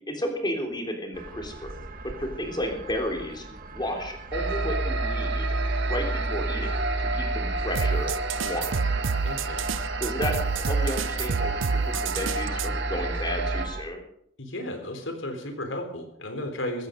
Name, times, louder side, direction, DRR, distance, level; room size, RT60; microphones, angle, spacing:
voice 1, 0.1-1.7 2.0-3.5 3.7-5.5 5.9-6.7 7.0-8.1 8.4-8.8 10.0-14.0, left 1 dB, 25° left, 3 dB, 3.4 m, -32 dB
sound 1, 1.1-13.8, right 4 dB, 50° right, 1.5 m, -40 dB
sound 2, 4.3-13.7, right 2 dB, 65° right, 1.5 m, -29 dB
sound 3, 7.7-12.7, right 5 dB, 85° right, 0.6 m, -28 dB
voice 2, 9.2-9.6 14.4-16.9, left 1 dB, 85° left, 6 dB, 3.6 m, -34 dB
16.0 x 14.5 x 5.2 m, 0.72 s
head